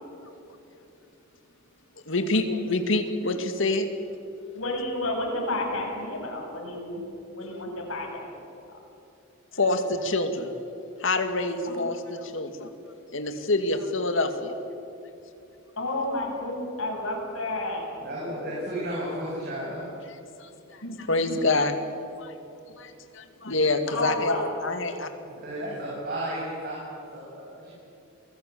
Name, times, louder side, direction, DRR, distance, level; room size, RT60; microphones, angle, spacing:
voice 1, 2.1-3.9 7.4-7.6 9.5-10.5 11.0-12.7 13.1-14.6 20.4-20.5 21.0-21.8 22.2-22.3 22.7-25.1, left 2 dB, 65° left, 7 dB, 2.4 m, -26 dB
voice 2, 4.5-7.0 7.3-8.2 11.7-11.9 15.8-17.8 20.8-20.9 21.2-21.4 23.9-24.4, left 2 dB, 85° left, 0 dB, 7.6 m, -31 dB
voice 3, 18.0-19.8 25.2-27.7, right 1 dB, 45° right, -6 dB, 7.7 m, -33 dB
28.0 x 19.5 x 8.6 m, 2.9 s
head